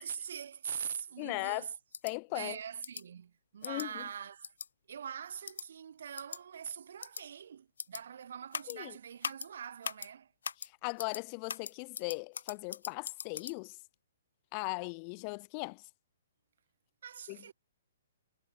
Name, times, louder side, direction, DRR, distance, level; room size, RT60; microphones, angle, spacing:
voice 1, 0.0-1.7 2.3-4.5 4.9-10.3 17.0-17.5, right 8 dB, 60° right, 5.1 m, -43 dB
voice 2, 1.2-1.7 2.0-2.6 3.6-4.0 8.7-9.0 10.6-13.8 14.5-15.8 17.3-17.4, left 40 dB or more, 25° left, 2.4 m, -38 dB
sound 1, 1.9-2.1 2.8-3.0 3.6-3.9 4.4-4.7 5.5-5.7 6.2-6.4 7.0-7.2 7.8-8.0 8.5-8.8 9.2-9.5 9.8-10.1 10.4-10.7 11.0-11.2 11.5-13.5, left 6 dB, 85° left, 2.1 m, -40 dB
hypercardioid pair, 170°, 0 cm